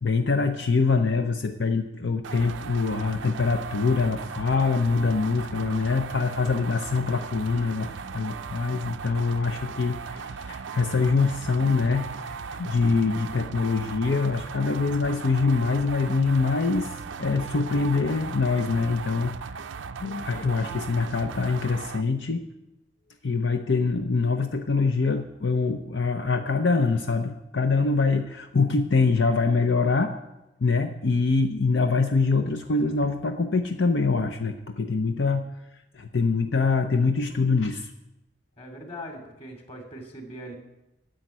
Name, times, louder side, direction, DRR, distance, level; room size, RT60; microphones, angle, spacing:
voice 1, 0.0-19.5 20.0-22.5 23.2-30.1 30.6-35.5 35.9-37.9, left 4 dB, 70° left, 5 dB, 0.7 m, -24 dB
sound 1, 2.2-22.0, right 5 dB, 90° right, 0.5 m, -37 dB
voice 2, 38.6-40.5, equal, 35° left, 3 dB, 2.6 m, -40 dB
10.5 x 7.8 x 9.5 m, 0.96 s
head